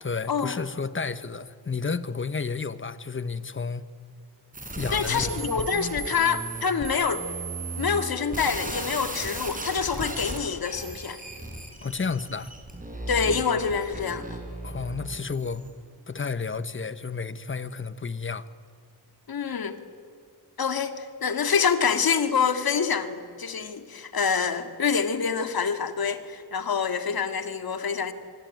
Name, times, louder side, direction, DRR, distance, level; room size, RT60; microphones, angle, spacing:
voice 1, 0.0-3.8 4.7-5.7 11.8-12.5 14.6-15.6 16.1-18.5, left 5 dB, 30° left, 1.2 m, -31 dB
sound 1, 4.5-15.7, right 2 dB, 20° right, 5.7 m, -36 dB
voice 2, 4.9-7.3 7.8-11.2 13.1-14.4 19.3-19.8 20.6-28.1, left 6 dB, 65° left, 2.2 m, -26 dB
26.0 x 24.5 x 9.3 m
wide cardioid pair, 105°, 38 cm